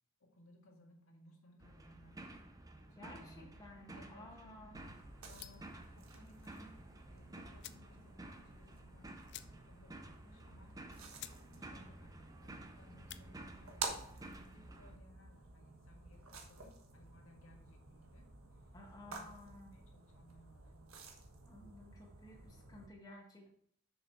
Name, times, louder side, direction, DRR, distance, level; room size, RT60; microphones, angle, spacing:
voice 1, 0.2-2.3 2.6-3.5 3.9-10.9 11.1-18.7 19.0-19.3 19.7-21.0, equal, 75° left, 0 dB, 1.9 m, -63 dB
sound 1, 1.6-15.0, right 1 dB, 15° right, 0.7 m, -53 dB
voice 2, 2.9-4.8 18.7-19.7 21.5-23.5, left 1 dB, 15° left, -1 dB, 1.5 m, -55 dB
sound 2, 4.7-22.9, right 4 dB, 85° right, 1.4 m, -51 dB
Opening igniting and closing a Zippo lighter, 5.4-5.8 7.1-7.2 7.6-7.9 8.3-8.4 8.6-8.8 9.3-9.9 10.2-10.3 10.8-10.9 11.2-11.4 11.8-12.1 12.9-13.3, left 13 dB, 55° left, 0.4 m, -52 dB
7.1 x 6.5 x 4.6 m, 0.65 s
head